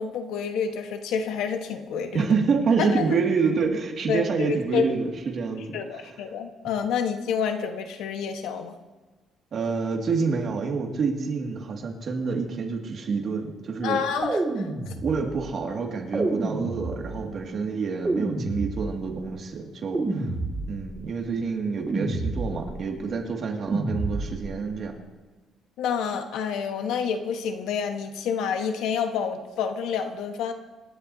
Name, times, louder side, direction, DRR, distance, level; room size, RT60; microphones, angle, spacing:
voice 1, 0.0-2.2 2.8-3.2 4.1-4.9 5.7-8.8 13.8-14.9 25.8-30.5, left 6 dB, 90° left, 6 dB, 1.2 m, -28 dB
voice 2, 2.1-5.8 9.5-14.0 15.0-20.3 20.7-24.9, right 5 dB, 45° right, 1 dB, 2.1 m, -27 dB
sound 1, 14.2-15.4 16.1-17.3 18.0-19.2 19.9-21.0 21.9-22.8 23.7-24.6, right 2 dB, 15° right, 2.2 m, -29 dB
26.5 x 11.5 x 2.8 m, 1.3 s
cardioid pair, 150°, 0 cm